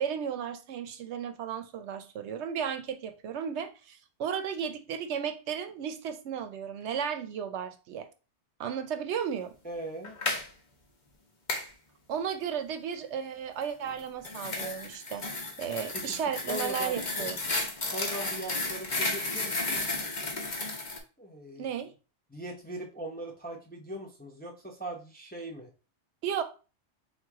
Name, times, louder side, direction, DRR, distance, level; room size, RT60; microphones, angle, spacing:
voice 1, 0.0-8.1 8.6-9.5 12.1-15.3 15.6-17.4 21.6-21.9 26.2-26.4, right 8 dB, 70° right, 0.8 m, -34 dB
voice 2, 9.6-10.2 15.9-16.2 16.5-17.0 17.9-20.0 21.2-21.7 22.3-25.7, right 1 dB, 10° left, 0.5 m, -40 dB
sound 1, 10.0-10.5 11.5-11.7 13.9-21.0, left 2 dB, 40° left, 0.9 m, -33 dB
3.9 x 3.2 x 3.5 m
omnidirectional pair, 1.2 m